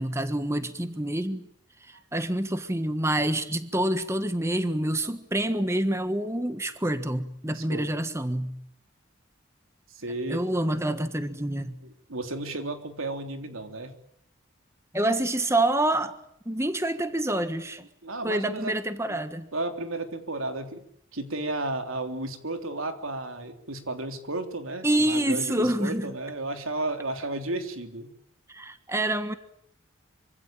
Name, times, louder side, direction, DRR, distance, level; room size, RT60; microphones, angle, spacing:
voice 1, 0.0-1.5 1.8-8.5 10.3-11.8 14.9-16.2 16.4-17.8 18.2-19.5 24.8-26.1 28.5-29.3, right 1 dB, 15° right, 10 dB, 1.4 m, -27 dB
voice 2, 7.5-7.9 9.9-10.4 11.8-13.9 17.3-17.5 18.0-18.7 19.1-19.2 19.5-20.8 21.1-28.1, right 2 dB, 85° right, 6 dB, 3.4 m, -33 dB
25.5 x 25.5 x 9.0 m, 0.70 s
head